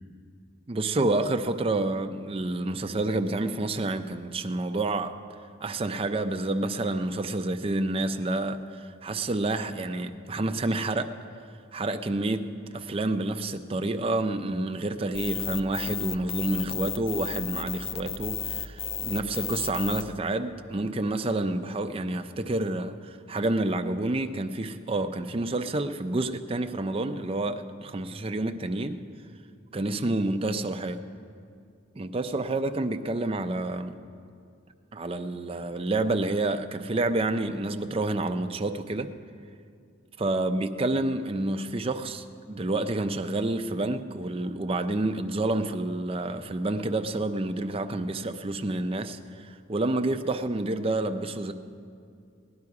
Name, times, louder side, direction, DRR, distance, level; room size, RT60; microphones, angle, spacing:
voice 1, 0.7-5.1 5.6-11.1 11.7-29.0 29.7-31.0 32.0-34.0 34.9-39.1 40.2-51.5, right 2 dB, 30° right, 8 dB, 0.5 m, -29 dB
sound 1, 15.1-20.0, left 8 dB, 30° left, 0.3 m, -33 dB
18.5 x 11.0 x 4.8 m, 2.4 s
head